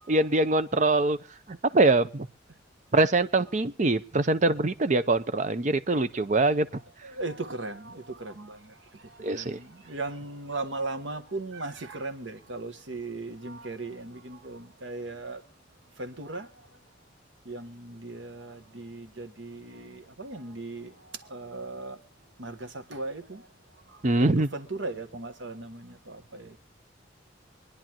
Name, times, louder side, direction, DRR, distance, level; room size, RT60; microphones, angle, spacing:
voice 1, 0.1-1.2 1.5-2.3 2.9-6.7 9.2-9.6 24.0-24.5, right 2 dB, 40° right, 0.6 m, -23 dB
voice 2, 7.0-15.4 16.0-16.5 17.4-22.0 22.4-23.5 23.9-24.2 24.5-26.6, right 2 dB, 75° right, 1.3 m, -38 dB
25.0 x 10.0 x 3.0 m
head